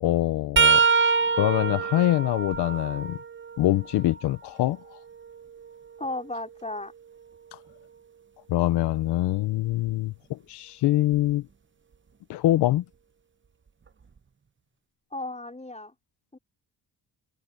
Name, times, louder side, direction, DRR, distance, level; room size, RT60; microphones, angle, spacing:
voice 1, 0.0-3.2 3.6-5.0 8.5-11.5 12.3-12.8, left 15 dB, 90° left, 1.0 m, -24 dB
sound 1, 0.6-4.3 4.8-6.8 9.7-9.9 11.1-11.3 12.6-12.7, right 5 dB, 30° right, 0.9 m, -26 dB
voice 2, 6.0-6.9 15.1-15.9 16.3-16.4, left 2 dB, 15° left, 4.4 m, -34 dB
supercardioid pair, 55°, 39 cm